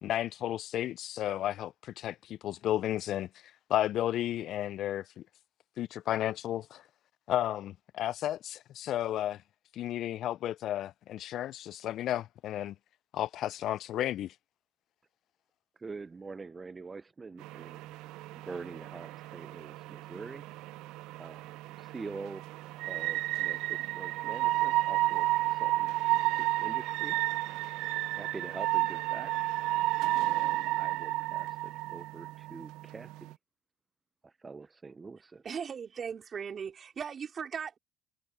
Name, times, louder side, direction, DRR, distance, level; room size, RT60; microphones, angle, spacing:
voice 1, 0.0-3.3 3.7-5.1 5.8-6.8 7.3-9.4 9.7-12.7 13.1-14.3, left 12 dB, 60° left, 0.5 m, -33 dB
voice 2, 15.8-18.1 18.3-20.4 21.2-21.4 21.8-22.5 22.9-27.2 28.1-29.4 30.2-33.3 34.2-35.4, right 4 dB, 25° right, 0.6 m, -45 dB
sound 1, 17.4-33.3, right 17 dB, 70° right, 0.7 m, -32 dB
voice 3, 35.4-37.8, right 7 dB, 40° right, 4.4 m, -38 dB
supercardioid pair, 80°, 0 cm